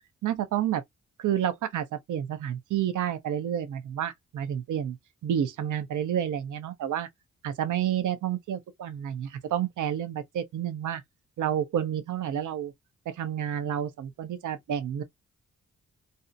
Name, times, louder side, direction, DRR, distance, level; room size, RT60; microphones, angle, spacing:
voice 1, 0.2-0.8 1.2-5.0 5.2-7.1 7.4-11.0 11.4-12.7 13.1-15.0, right 10 dB, 65° right, 0.6 m, -30 dB
2.6 x 2.1 x 2.5 m
supercardioid pair, 45°, 32 cm